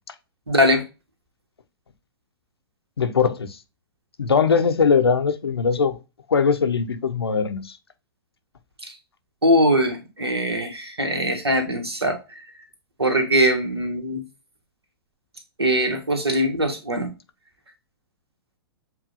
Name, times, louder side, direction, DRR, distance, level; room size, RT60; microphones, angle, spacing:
voice 1, 0.5-0.8 9.4-12.2 13.0-14.2 15.6-17.1, equal, 80° right, 1.5 m, -21 dB
voice 2, 3.0-3.6 4.2-6.0 6.3-7.8, left 5 dB, 75° left, 0.7 m, -21 dB
7.5 x 2.6 x 2.5 m
figure-of-eight pair, 110°, 13 cm